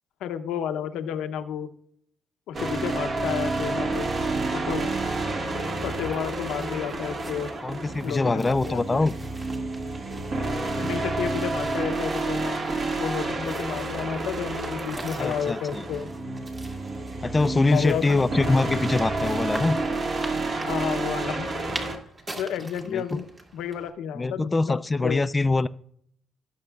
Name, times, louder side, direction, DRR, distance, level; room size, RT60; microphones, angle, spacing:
voice 1, 0.2-1.7 2.5-4.1 4.5-4.9 5.8-7.5 8.0-9.0 10.8-12.6 13.0-16.1 17.7-18.0 18.3-18.6 20.7-21.5 22.4-25.2, left 8 dB, 90° left, 0.7 m, -31 dB
sound 1, 2.5-22.0, right 2 dB, 45° right, 1.6 m, -29 dB
sound 2, 5.3-23.9, right 1 dB, 30° right, 1.8 m, -44 dB
voice 2, 7.6-9.1 15.0-15.8 17.2-19.8 22.9-23.2 24.1-25.7, left 3 dB, 25° left, 0.3 m, -24 dB
17.5 x 6.4 x 2.3 m
cardioid pair, 90°, 0 cm